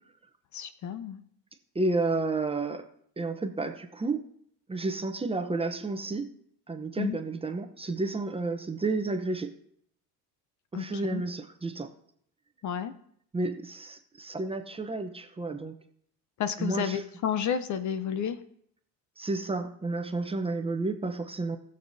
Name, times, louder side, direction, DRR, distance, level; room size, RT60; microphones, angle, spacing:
voice 1, 0.5-1.2 7.0-7.2 10.7-11.2 12.6-12.9 16.4-18.4, left 8 dB, 45° left, 12 dB, 0.7 m, -31 dB
voice 2, 1.7-2.9 3.2-4.2 4.7-6.3 6.7-9.5 10.7-11.9 13.3-15.7 16.6-17.0 19.2-21.6, right 3 dB, 15° right, 6 dB, 0.8 m, -31 dB
19.0 x 6.7 x 2.7 m, 0.67 s
supercardioid pair, 110°, 40 cm